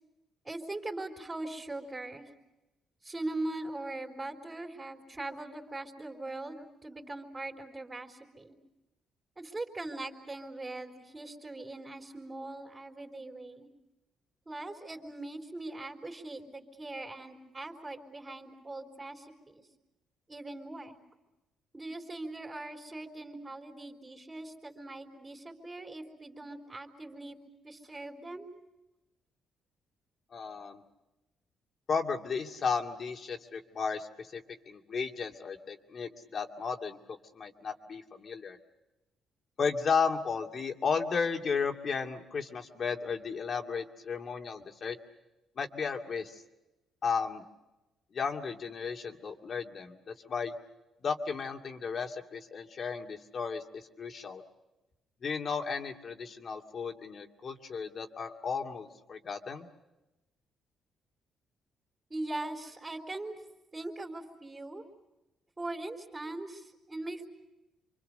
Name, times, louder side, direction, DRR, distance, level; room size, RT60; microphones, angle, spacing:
voice 1, 0.4-2.3 3.0-8.6 9.4-13.7 14.5-19.6 20.3-21.0 21.7-27.4 27.6-28.5 62.1-63.4 63.7-64.8 65.6-67.3, right 2 dB, 25° right, 0 dB, 3.8 m, -41 dB
voice 2, 30.3-30.8 31.9-38.6 39.6-45.0 45.6-46.4 47.0-47.4 48.1-50.6 51.0-54.4 55.2-59.7, left 5 dB, 50° left, 4 dB, 2.4 m, -34 dB
28.0 x 24.5 x 6.7 m, 1.0 s
cardioid pair, 90°, 0 cm